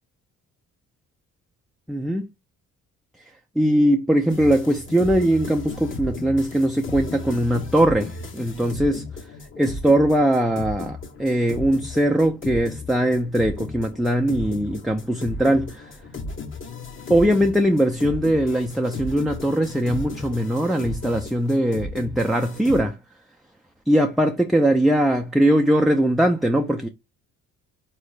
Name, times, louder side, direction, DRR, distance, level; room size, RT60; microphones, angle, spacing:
voice 1, 1.9-2.3 3.2-3.3 3.6-9.0 9.6-15.9 17.1-23.0 23.9-26.9, right 1 dB, ahead, 0.5 m, -21 dB
sound 1, 4.3-22.8, left 2 dB, 30° left, 1.0 m, -35 dB
3.9 x 3.0 x 3.1 m
hypercardioid pair, 50°, 39 cm